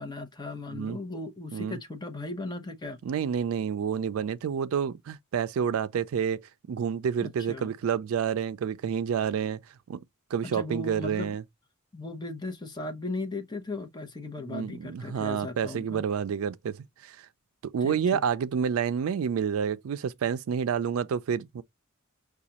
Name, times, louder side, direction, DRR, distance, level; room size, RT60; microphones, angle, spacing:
voice 1, 0.0-3.0 7.2-7.7 10.4-11.3 11.9-16.1 17.8-18.2, left 2 dB, 20° left, 0.8 m, -37 dB
voice 2, 3.0-9.6 9.9-10.0 10.3-11.4 14.5-17.3 17.6-21.6, right 7 dB, 80° right, 0.4 m, -29 dB
4.9 x 2.3 x 2.8 m
head